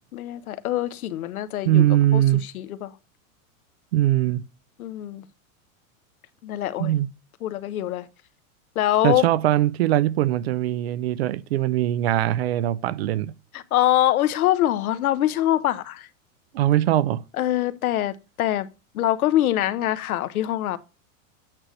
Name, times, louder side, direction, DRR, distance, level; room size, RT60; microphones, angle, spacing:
voice 1, 0.1-1.8 2.1-2.9 4.8-5.3 6.4-6.9 7.4-8.1 8.7-9.3 13.5-16.1 17.3-18.7 18.9-20.8, left 13 dB, 85° left, 1.0 m, -24 dB
voice 2, 1.6-2.4 3.9-4.5 6.8-7.1 9.0-13.3 16.5-17.2, right 13 dB, 50° right, 0.4 m, -21 dB
8.9 x 6.3 x 3.1 m
supercardioid pair, 170°, 42 cm